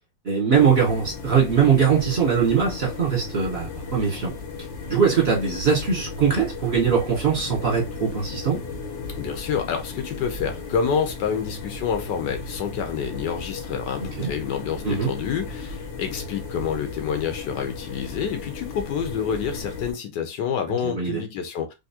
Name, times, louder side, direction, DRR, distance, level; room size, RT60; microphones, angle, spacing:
voice 1, 0.2-4.3 4.9-8.6 14.2-14.3 14.8-15.1 20.8-21.2, right 6 dB, 35° right, 1.3 m, -21 dB
sound 1, 0.5-19.9, left 3 dB, 55° left, 0.9 m, -35 dB
voice 2, 9.2-21.7, left 7 dB, 75° left, 1.2 m, -28 dB
3.5 x 2.7 x 2.8 m
omnidirectional pair, 2.0 m